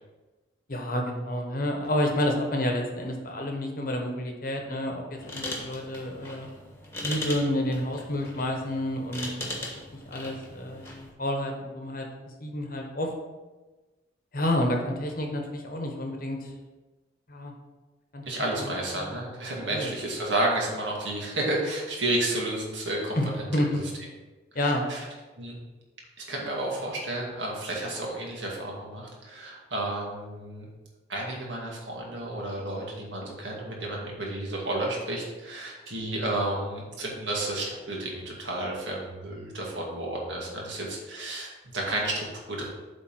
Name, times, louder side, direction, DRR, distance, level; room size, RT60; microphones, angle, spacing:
voice 1, 0.7-6.5 7.0-9.5 10.1-12.1 12.4-13.1 14.3-16.5 17.3-17.5 18.1-18.2 18.6-19.2 19.7-19.9 23.1-23.8 24.5-24.8, left 1 dB, 50° left, 2 dB, 1.1 m, -29 dB
sound 1, 5.2-11.1, left 1 dB, 15° left, 1.3 m, -39 dB
voice 2, 18.2-23.4 23.7-23.8 24.6-25.1 25.4-25.6 26.3-30.7 31.1-42.7, right 1 dB, 70° right, -2 dB, 2.1 m, -31 dB
8.1 x 3.6 x 6.0 m, 1.2 s
head